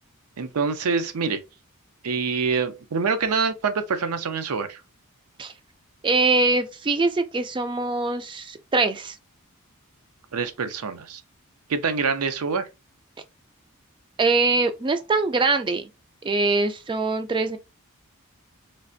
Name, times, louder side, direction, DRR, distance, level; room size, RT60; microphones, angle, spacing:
voice 1, 0.4-1.4 2.0-4.8 10.3-11.2 11.7-12.6, right 5 dB, 75° right, 0.5 m, -25 dB
voice 2, 6.0-9.2 14.2-15.9 16.2-17.6, right 3 dB, 20° right, 0.3 m, -23 dB
3.2 x 2.4 x 2.6 m
head